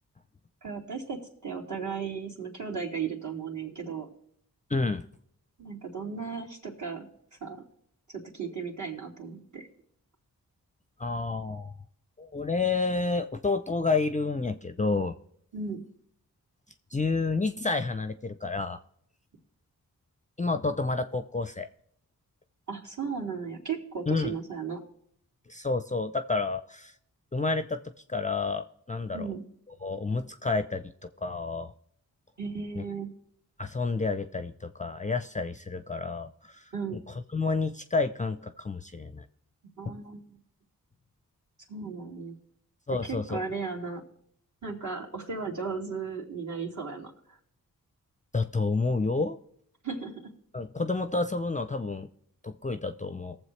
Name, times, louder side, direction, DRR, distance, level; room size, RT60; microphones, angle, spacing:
voice 1, 0.6-4.1 5.6-7.1 7.4-7.6 8.1-9.7 15.5-15.8 22.7-24.8 29.1-29.4 32.4-33.1 36.7-37.0 39.8-40.2 41.7-42.3 43.0-44.0 44.6-47.4 49.8-50.3, right 5 dB, 50° right, -1 dB, 2.6 m, -35 dB
voice 2, 4.7-5.0 11.0-11.7 12.2-15.1 16.9-18.8 20.4-21.7 24.1-24.4 25.5-26.9 27.3-27.8 28.1-29.3 29.8-30.9 31.2-31.7 32.8-32.9 33.6-37.0 37.3-39.2 39.8-40.0 42.9-43.4 48.3-49.4 50.5-52.1 52.4-53.4, left 3 dB, 20° left, 10 dB, 0.5 m, -29 dB
18.5 x 7.2 x 3.2 m, 0.69 s
cardioid pair, 40°, 37 cm